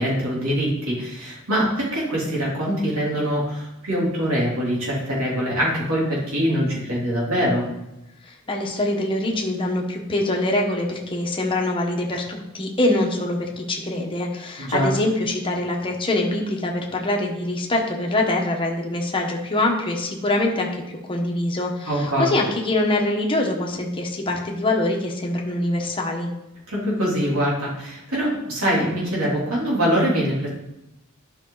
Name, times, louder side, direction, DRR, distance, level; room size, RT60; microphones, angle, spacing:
voice 1, 0.0-7.7 14.6-14.9 21.9-22.3 26.7-30.5, equal, 75° right, -5 dB, 3.4 m, -23 dB
voice 2, 8.2-26.3, left 1 dB, 25° left, 0 dB, 1.3 m, -24 dB
11.5 x 5.7 x 4.0 m, 0.90 s
head